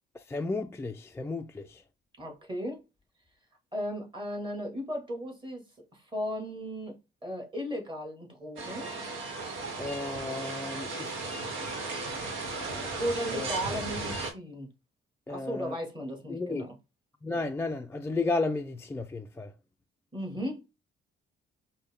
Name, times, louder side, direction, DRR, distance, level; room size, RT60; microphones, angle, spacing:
voice 1, 0.1-1.8 9.8-11.2 11.6-12.0 12.6-13.0 13.3-13.5 15.3-15.8 16.3-16.6 17.2-19.5, left 3 dB, 10° left, 0.3 m, -34 dB
voice 2, 2.2-2.8 3.7-5.6 5.9-8.9 13.0-14.7 15.3-16.7 20.1-20.6, equal, 25° right, 1.8 m, -35 dB
sound 1, 8.6-14.3, right 3 dB, 85° right, 1.1 m, -36 dB
5.1 x 2.1 x 3.5 m
cardioid pair, 90°, 20 cm